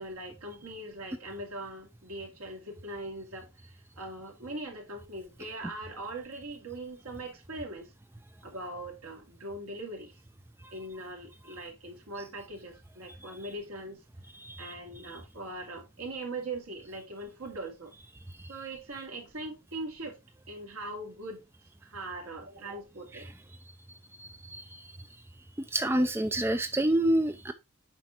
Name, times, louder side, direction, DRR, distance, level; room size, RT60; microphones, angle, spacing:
voice 1, 0.0-7.9 8.4-10.1 10.7-14.0 14.6-17.9 18.5-20.2 20.5-21.4 21.8-23.3, right 2 dB, 80° right, 2.3 m, -41 dB
voice 2, 14.4-14.7 24.2-24.8 25.7-27.5, right 1 dB, 10° right, 0.4 m, -28 dB
7.6 x 5.2 x 2.9 m
head